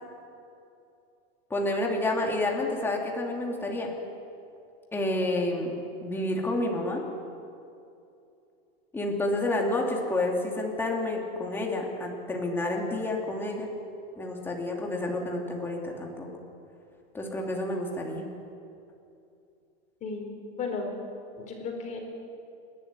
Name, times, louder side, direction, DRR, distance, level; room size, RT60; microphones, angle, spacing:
voice 1, 1.5-3.9 4.9-7.0 8.9-13.7 14.2-16.3 17.1-18.3, left 2 dB, 5° left, -1 dB, 2.6 m, -29 dB
voice 2, 20.0-20.9 21.4-22.0, left 4 dB, 25° left, 2 dB, 4.3 m, -34 dB
29.0 x 12.0 x 9.6 m, 2.7 s
supercardioid pair, 165°, 31 cm